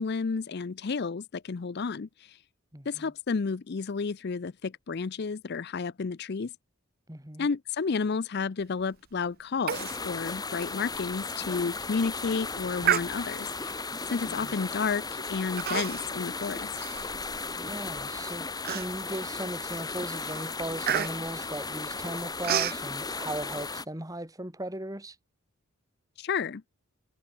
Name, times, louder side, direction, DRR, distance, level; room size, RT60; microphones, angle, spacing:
voice 1, 0.0-2.4 2.9-6.5 7.4-16.7 26.2-26.6, left 5 dB, 45° left, 0.5 m, -31 dB
voice 2, 2.7-3.1 7.1-7.5 14.3-14.6 17.6-25.2, right 1 dB, 15° right, 2.5 m, -37 dB
sound 1, 9.7-23.9, left 4 dB, 15° left, 3.1 m, -36 dB
Human voice, 9.7-10.0 10.3-10.4 10.9-11.0 11.6-11.9 12.8-13.5 14.3-14.5 15.6-16.2 16.5-17.6 18.1-18.2 18.6-19.2 19.7-19.9 20.2-22.8, right 10 dB, 40° right, 0.4 m, -31 dB
head